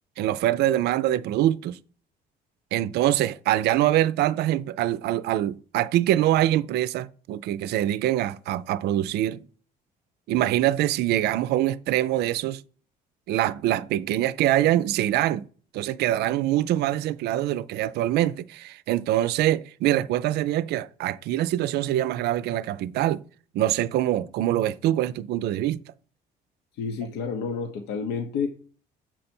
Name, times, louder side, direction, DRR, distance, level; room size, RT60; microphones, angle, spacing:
voice 1, 0.2-1.8 2.7-9.4 10.3-12.6 13.3-15.5 15.7-23.2 23.5-25.8, right 13 dB, 75° right, 0.4 m, -24 dB
voice 2, 26.7-28.5, left 5 dB, 80° left, 0.9 m, -29 dB
7.5 x 5.4 x 4.3 m
cardioid pair, 110°, 17 cm